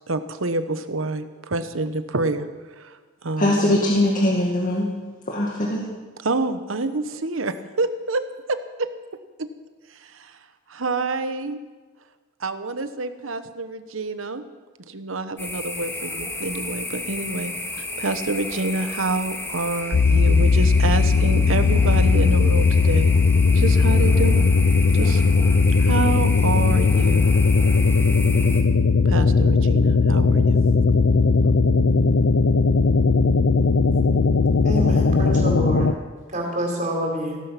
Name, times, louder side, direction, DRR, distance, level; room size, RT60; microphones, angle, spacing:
voice 1, 0.1-3.8 6.2-8.2 8.5-8.9 9.4-9.5 9.9-10.4 10.7-11.6 12.4-14.4 14.8-23.1 23.5-24.5 24.9-25.2 25.8-27.3 29.0-30.6, right 2 dB, 80° right, 10 dB, 1.0 m, -27 dB
voice 2, 3.4-4.9 5.3-5.8, left 1 dB, 45° left, -2 dB, 2.1 m, -21 dB
sound 1, 15.4-28.6, left 2 dB, 10° left, 2.0 m, -33 dB
sound 2, 19.9-35.9, left 4 dB, 90° left, 0.6 m, -18 dB
voice 3, 34.6-35.9 36.3-37.4, equal, 40° right, 0 dB, 4.2 m, -27 dB
16.0 x 14.0 x 5.9 m, 1.3 s
head